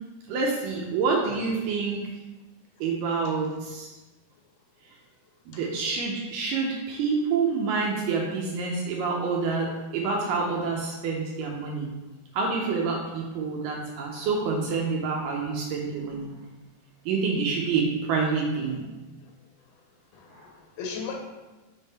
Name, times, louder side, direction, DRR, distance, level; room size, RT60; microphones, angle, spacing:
voice 1, 0.3-2.0 2.8-3.9 5.5-11.9 12.3-16.3 17.1-18.9, right 4 dB, 80° right, -1 dB, 2.0 m, -27 dB
voice 2, 20.1-21.1, left 5 dB, 85° left, 1 dB, 2.8 m, -38 dB
6.5 x 3.6 x 4.1 m, 1.1 s
omnidirectional pair, 4.3 m